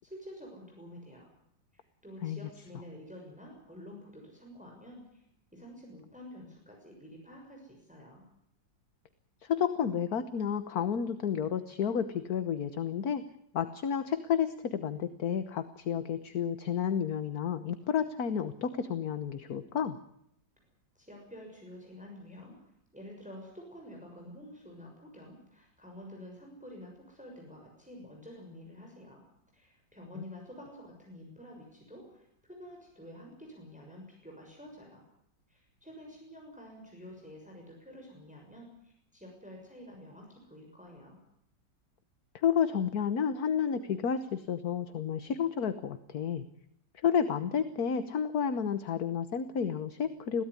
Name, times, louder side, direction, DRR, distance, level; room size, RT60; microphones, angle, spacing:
voice 1, 0.0-1.3 1.7-5.2 5.5-8.2 20.9-22.6 22.9-29.2 29.5-35.0 35.5-41.2, equal, 5° right, 0 dB, 6.5 m, -49 dB
voice 2, 9.4-13.2 13.5-20.0 42.3-46.4 47.0-50.4, left 7 dB, 55° left, 11 dB, 1.6 m, -31 dB
22.5 x 16.5 x 9.8 m, 0.73 s
omnidirectional pair, 2.0 m